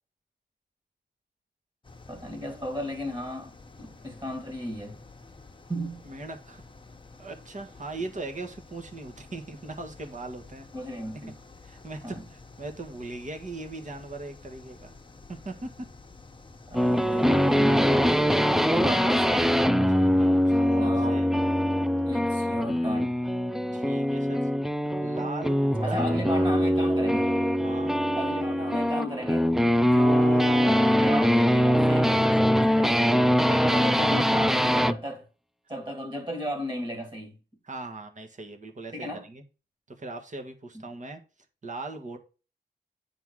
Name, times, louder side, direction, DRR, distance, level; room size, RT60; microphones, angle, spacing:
sound 1, 1.8-19.5, left 3 dB, 25° left, 1.1 m, -50 dB
voice 1, 2.1-3.5 3.8-5.0 5.7-6.0 10.7-11.4 12.0-12.2 16.7-18.2 18.7-19.5 20.8-21.2 22.1-23.1 25.8-27.3 28.2-33.1 33.7-35.3 35.7-37.4 38.9-39.2, equal, 25° right, 2.1 m, -34 dB
voice 2, 6.0-6.6 7.2-10.7 11.1-11.2 11.6-14.9 15.3-15.9 19.9-21.3 23.7-24.5 25.0-26.0 27.6-27.9 33.4-33.9 37.6-39.4 40.0-41.2 41.6-42.2, right 2 dB, 45° right, 1.5 m, -39 dB
sound 2, 16.7-35.0, equal, ahead, 0.4 m, -23 dB
9.1 x 3.7 x 6.2 m
wide cardioid pair, 120°, 18 cm